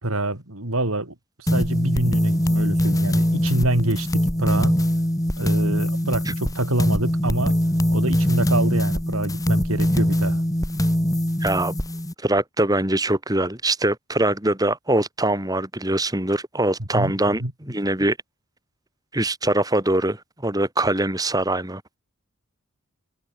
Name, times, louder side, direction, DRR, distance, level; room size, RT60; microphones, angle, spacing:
voice 1, 0.0-4.8 5.4-7.6 7.9-10.4 16.8-17.1 17.4-17.5, right 1 dB, 80° right, 3.9 m, -26 dB
sound 1, 1.5-12.1, equal, 15° left, 2.6 m, -22 dB
voice 2, 11.4-11.7 12.2-18.2 19.1-22.0, right 1 dB, 15° right, 3.5 m, -23 dB
head